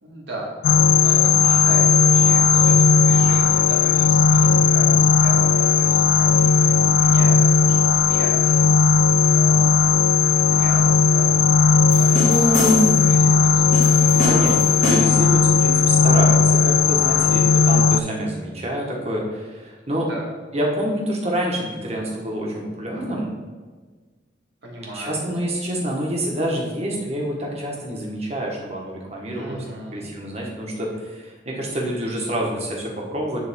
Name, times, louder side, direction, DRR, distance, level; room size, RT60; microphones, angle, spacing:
voice 1, 0.0-8.7 9.3-9.9 10.3-11.3 11.9-14.6 17.1-17.8 19.9-20.3 24.6-25.2 29.4-30.1, right 1 dB, 75° right, -3 dB, 1.8 m, -37 dB
sound 1, 0.6-18.0, left 5 dB, 75° left, 0.3 m, -16 dB
sound 2, 11.9-13.1 13.7-15.3, equal, 45° left, 1.9 m, -26 dB
voice 2, 12.0-13.2 14.1-14.5 14.8-20.1 20.5-23.3 24.9-29.6 29.9-33.4, equal, 35° right, -2 dB, 1.4 m, -26 dB
9.7 x 3.6 x 3.6 m, 1.4 s
head